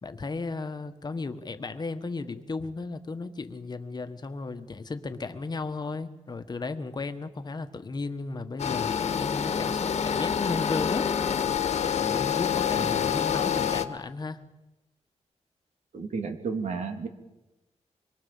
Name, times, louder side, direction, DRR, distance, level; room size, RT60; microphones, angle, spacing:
voice 1, 0.0-11.2 12.0-14.4, left 3 dB, 35° left, 8 dB, 1.4 m, -35 dB
sound 1, 8.6-13.9, left 8 dB, 65° left, 1.6 m, -27 dB
voice 2, 15.9-17.1, right 4 dB, 75° right, 5 dB, 3.2 m, -32 dB
25.5 x 23.0 x 7.3 m, 1.0 s
wide cardioid pair, 140°, 12 cm